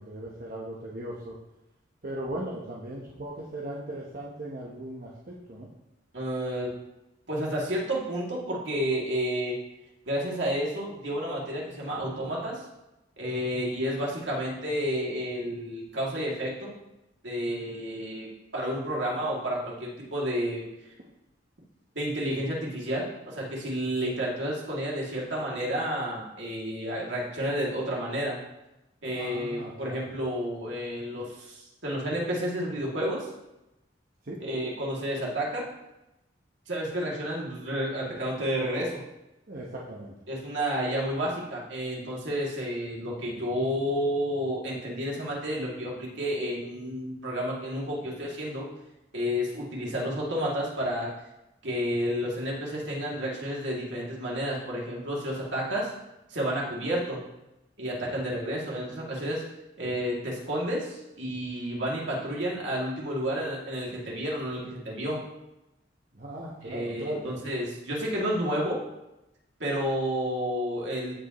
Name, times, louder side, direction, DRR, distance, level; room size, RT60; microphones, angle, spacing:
voice 1, 0.0-1.4 2.0-5.7 29.1-30.1 34.2-34.4 39.5-40.1 66.1-67.4, right 1 dB, 50° right, -4 dB, 1.0 m, -38 dB
voice 2, 6.1-6.7 7.3-9.6 10.1-12.6 13.2-16.7 17.2-20.6 21.9-28.4 29.0-33.3 34.4-35.7 36.7-39.0 40.3-48.7 49.1-51.1 51.6-55.9 56.3-57.2 57.8-59.4 59.8-65.2 66.6-68.8 69.6-71.1, equal, 75° right, -4 dB, 2.6 m, -31 dB
15.0 x 5.1 x 3.1 m, 0.94 s
head